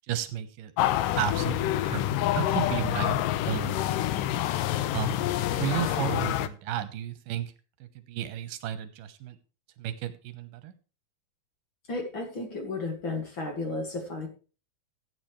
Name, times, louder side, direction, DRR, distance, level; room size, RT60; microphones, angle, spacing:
voice 1, 0.1-0.7 1.2-4.2 4.9-5.3 5.6-7.5 7.8-9.4 9.8-10.7, right 11 dB, 85° right, 12 dB, 2.7 m, -33 dB
sound 1, 0.8-6.5, left 13 dB, 85° left, 2.4 m, -27 dB
voice 2, 11.9-14.3, left 2 dB, 40° left, 3 dB, 2.4 m, -33 dB
16.5 x 8.7 x 3.2 m, 0.35 s
omnidirectional pair, 3.8 m